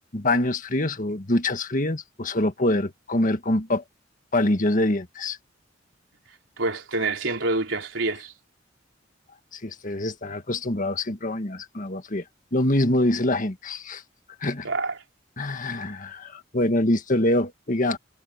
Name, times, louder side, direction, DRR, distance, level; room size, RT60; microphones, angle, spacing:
voice 1, 0.1-3.8 4.3-5.4 9.5-12.2 12.5-14.0 14.4-14.7 15.4-18.0, left 1 dB, 45° left, 1.7 m, -25 dB
voice 2, 6.6-8.3 14.6-15.0, right 2 dB, 80° right, 3.7 m, -27 dB
head